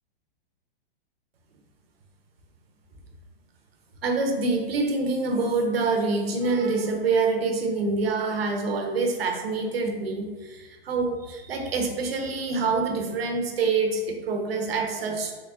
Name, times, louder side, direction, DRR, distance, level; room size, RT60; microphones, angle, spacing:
voice 1, 4.0-15.4, right 3 dB, 85° right, 3 dB, 0.7 m, -26 dB
4.0 x 3.2 x 2.3 m, 1.4 s
hypercardioid pair, 140°, 29 cm